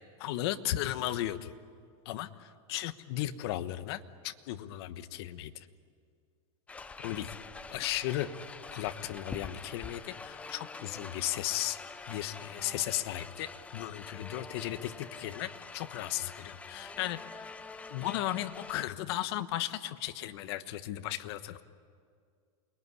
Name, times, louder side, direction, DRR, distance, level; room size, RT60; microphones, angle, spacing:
voice 1, 0.2-1.5 2.0-5.7 7.0-7.4 7.7-11.8 12.1-17.5 17.9-21.6, left 14 dB, 45° left, 10 dB, 1.2 m, -36 dB
sound 1, 6.7-18.8, left 4 dB, 5° left, 0.6 m, -46 dB
28.5 x 21.0 x 9.7 m, 2.2 s
supercardioid pair, 165°, 17 cm